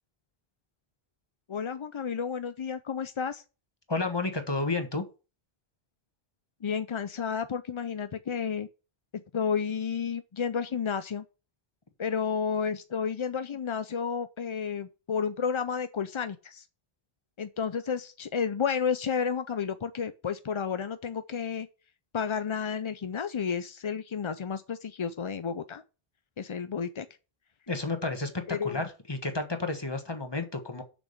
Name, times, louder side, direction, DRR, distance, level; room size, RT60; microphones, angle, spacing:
voice 1, 1.5-3.4 6.6-8.7 9.3-11.2 12.0-16.6 17.4-21.7 22.1-25.8 26.4-27.1 28.5-28.8, left 6 dB, 45° left, 0.4 m, -31 dB
voice 2, 3.9-5.0 27.7-28.3 28.6-30.8, left 3 dB, 25° left, 1.4 m, -31 dB
6.9 x 6.2 x 6.5 m
omnidirectional pair, 1.0 m